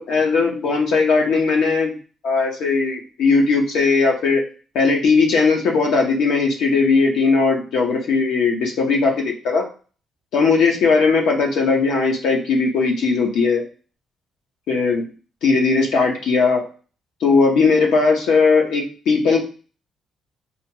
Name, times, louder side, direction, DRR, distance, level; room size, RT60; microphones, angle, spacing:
voice 1, 0.0-1.9 2.2-4.4 4.7-9.7 10.3-13.6 14.7-15.1 15.4-16.6 17.2-19.4, left 4 dB, 80° left, 1 dB, 0.7 m, -18 dB
2.8 x 2.2 x 2.8 m, 0.38 s
cardioid pair, 90°, 0 cm